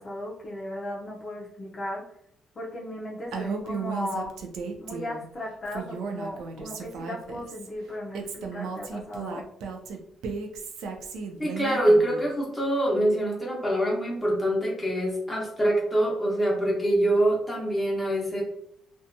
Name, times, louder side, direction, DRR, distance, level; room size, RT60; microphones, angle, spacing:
voice 1, 0.0-2.0 2.6-4.3 4.8-9.4, left 1 dB, 35° left, -3 dB, 0.5 m, -36 dB
Female speech woman speaking, 3.3-5.3 5.7-7.7 8.1-12.3, right 5 dB, 85° right, 0.4 m, -35 dB
voice 2, 11.4-18.4, right 1 dB, ahead, -4 dB, 0.9 m, -24 dB
2.6 x 2.2 x 2.6 m, 0.70 s
cardioid pair, 125°, 0 cm